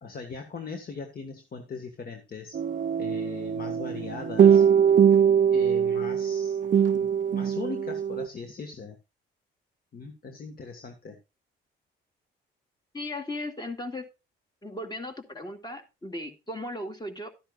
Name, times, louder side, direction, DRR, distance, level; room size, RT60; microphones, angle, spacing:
voice 1, 0.0-2.6 3.0-4.6 5.5-6.6 6.9-9.0 9.9-11.2, left 4 dB, 50° left, 7 dB, 1.7 m, -39 dB
sound 1, 2.5-8.3, right 8 dB, 40° right, 0.5 m, -22 dB
voice 2, 12.9-14.1 14.6-17.3, left 1 dB, 20° left, 6 dB, 2.4 m, -36 dB
12.5 x 10.0 x 2.5 m, 0.28 s
cardioid pair, 90°, 20 cm